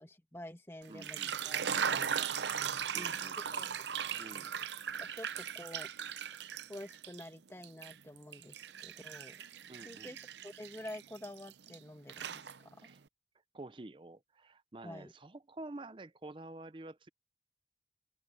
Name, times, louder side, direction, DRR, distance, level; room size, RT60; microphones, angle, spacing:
voice 1, 0.0-1.2 1.4-2.3 2.9-3.7 5.0-5.9 6.7-9.4 9.8-10.2 10.4-12.7 14.8-15.1, left 1 dB, 15° left, 1.6 m, -48 dB
sound 1, 0.8-7.3 7.6-11.8 12.1-12.9, right 8 dB, 85° right, 0.7 m, -38 dB
voice 2, 0.9-1.3 2.9-3.4 4.2-4.5 9.7-10.2 12.8-13.0 13.5-17.1, right 2 dB, 30° right, 0.5 m, -49 dB
open air
head